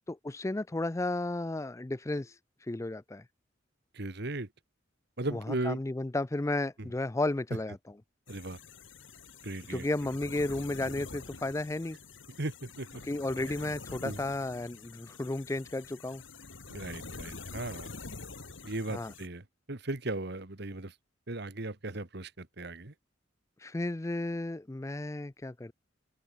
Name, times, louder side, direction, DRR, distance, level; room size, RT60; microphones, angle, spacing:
voice 1, 0.1-2.3 2.7-3.2 5.3-7.8 9.7-12.0 13.1-16.2 18.9-19.1 23.6-25.7, left 2 dB, 15° left, 0.5 m, -33 dB
voice 2, 3.9-4.5 5.2-5.8 6.8-6.9 8.3-8.6 9.4-9.9 12.4-13.0 14.0-14.2 16.7-17.9 18.6-20.9 21.3-22.9, right 2 dB, 60° right, 1.8 m, -37 dB
sound 1, 8.3-19.3, left 3 dB, 85° left, 4.1 m, -46 dB
open air
head